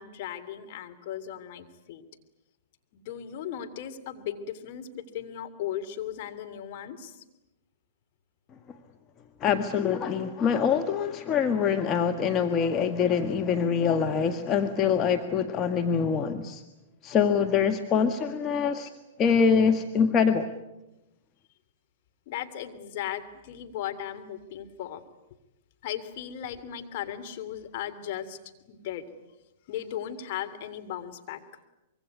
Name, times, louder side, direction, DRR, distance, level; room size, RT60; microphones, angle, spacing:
voice 1, 0.0-2.0 2.9-7.2 18.7-18.8 22.3-25.0 25.8-28.4 28.7-29.1 29.7-31.4, left 10 dB, 50° left, 7 dB, 3.1 m, -37 dB
voice 2, 9.4-16.6 17.0-18.9 19.2-20.5, left 6 dB, 30° left, 6 dB, 1.6 m, -24 dB
25.0 x 23.0 x 9.6 m, 0.95 s
hypercardioid pair, 110°, 0 cm